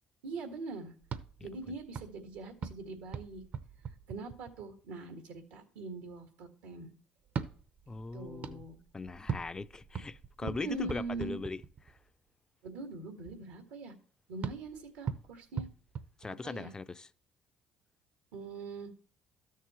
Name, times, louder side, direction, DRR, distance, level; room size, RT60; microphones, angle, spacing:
voice 1, 0.2-0.9 1.4-3.4 4.1-6.9 8.1-8.8 10.4-11.4 12.6-13.9 14.3-15.7 16.4-16.7 18.3-18.9, right 3 dB, 90° right, 1.7 m, -42 dB
sound 1, 1.0-4.9 7.2-12.1 14.4-16.8, right 7 dB, 55° right, 0.7 m, -42 dB
voice 2, 7.9-8.7 8.9-11.6 16.2-17.1, left 3 dB, 20° left, 0.4 m, -40 dB
12.5 x 6.6 x 3.1 m
supercardioid pair, 80°, 3 cm